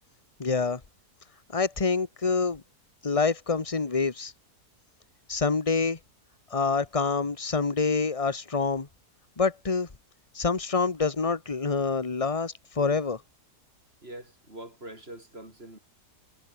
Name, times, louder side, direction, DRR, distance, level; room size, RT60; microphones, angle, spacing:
voice 1, 0.4-0.8 1.5-2.6 3.0-4.3 5.3-6.0 6.5-8.9 9.4-9.9 10.3-13.2, left 4 dB, 20° left, 1.5 m, -26 dB
voice 2, 14.0-15.8, right 1 dB, 35° right, 7.3 m, -44 dB
omnidirectional pair, 1.7 m